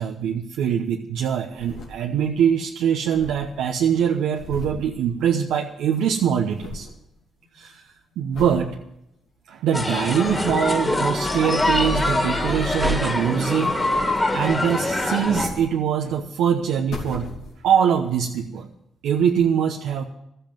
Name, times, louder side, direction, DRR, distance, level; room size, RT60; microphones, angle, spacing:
voice 1, 0.0-6.9 7.6-7.8 8.2-8.8 9.5-13.7 14.0-17.3 17.6-18.7 19.0-20.0, right 8 dB, 80° right, 1 dB, 0.9 m, -23 dB
sound 1, 1.3-2.4 2.7-2.8 2.9-5.7 6.0-7.0 7.4-7.8 8.3-8.7 9.2-9.3 9.9-10.7 11.7-13.2 13.6-14.1 15.0-16.2 16.6-17.8 18.4-18.5, left 3 dB, 75° left, 3.0 m, -39 dB
sound 2, 9.7-15.5, left 1 dB, 20° left, 2.7 m, -24 dB
sound 3, 10.3-15.3, equal, 15° right, 0.9 m, -33 dB
13.0 x 8.0 x 9.3 m, 0.81 s
supercardioid pair, 60°, 0 cm